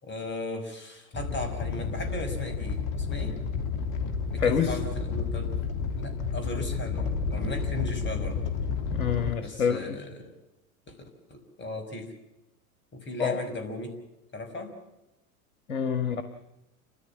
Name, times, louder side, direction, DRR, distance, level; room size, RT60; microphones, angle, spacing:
voice 1, 0.0-3.4 4.3-8.4 9.4-10.3 10.9-11.0 11.3-12.1 12.9-14.0 14.3-14.7, left 2 dB, 25° left, 6 dB, 5.9 m, -37 dB
Animal, 1.1-9.3, left 5 dB, 45° left, 2.9 m, -31 dB
voice 2, 4.4-4.8 8.9-10.0 13.2-13.4 15.7-16.2, left 7 dB, 85° left, 8 dB, 1.7 m, -27 dB
30.0 x 14.0 x 7.3 m, 0.93 s
hypercardioid pair, 90°, 42 cm